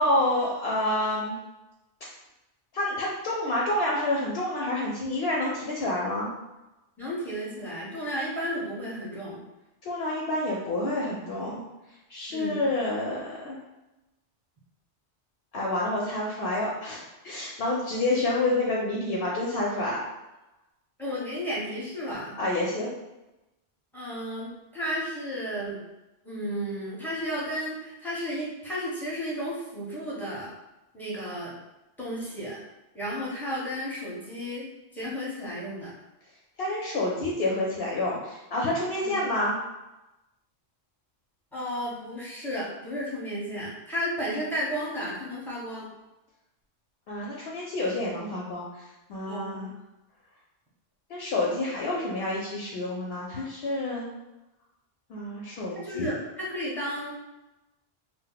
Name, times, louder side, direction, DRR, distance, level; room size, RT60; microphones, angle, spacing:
voice 1, 0.0-1.4 2.7-6.3 9.8-11.6 12.1-13.6 15.5-20.0 22.4-22.9 36.6-39.5 47.1-49.7 51.1-54.1 55.1-56.1, left 1 dB, 65° left, -3 dB, 0.7 m, -28 dB
voice 2, 7.0-9.4 12.3-12.7 21.0-22.4 23.9-25.8 26.2-30.5 30.9-31.5 32.0-32.6 32.9-34.7 34.9-35.9 39.0-39.1 41.5-45.9 49.3-49.7 55.7-57.1, equal, ahead, -8 dB, 0.7 m, -33 dB
2.4 x 2.0 x 3.8 m, 1.0 s
omnidirectional pair, 1.1 m